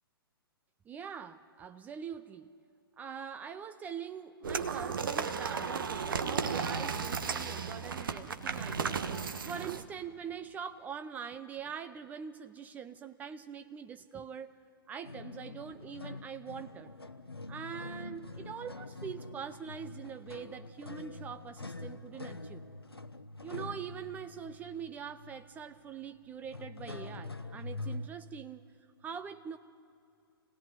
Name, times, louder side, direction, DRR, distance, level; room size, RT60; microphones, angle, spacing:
voice 1, 0.9-2.5 3.0-9.0 9.4-14.5 14.9-16.9 17.5-22.7 23.4-28.6 29.0-29.6, right 7 dB, 15° right, 10 dB, 0.5 m, -43 dB
sound 1, 4.4-9.8, right 5 dB, 60° right, 1.2 m, -34 dB
sound 2, 15.0-28.1, left 2 dB, 85° left, 0.9 m, -45 dB
26.5 x 17.5 x 9.9 m, 2.6 s
figure-of-eight pair, 115°, 13 cm